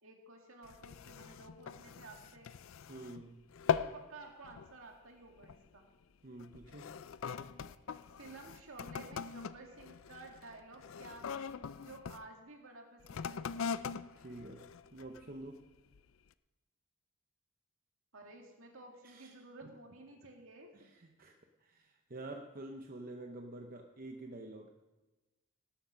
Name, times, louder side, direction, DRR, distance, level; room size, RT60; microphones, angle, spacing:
voice 1, 0.0-2.5 3.7-5.8 8.2-13.4 18.1-20.7, right 2 dB, 65° right, 2 dB, 2.3 m, -53 dB
sound 1, 0.6-3.2 3.5-4.1 4.4-4.8 5.4-5.7 6.4-12.2 13.0-15.4 15.9-16.0, left 7 dB, 60° left, 0.4 m, -41 dB
voice 2, 2.9-3.4 6.2-6.9 14.2-15.6 19.0-19.3 19.6-19.7 20.7-24.7, right 2 dB, 40° right, 3 dB, 0.8 m, -48 dB
18.5 x 7.9 x 5.7 m, 1.1 s
head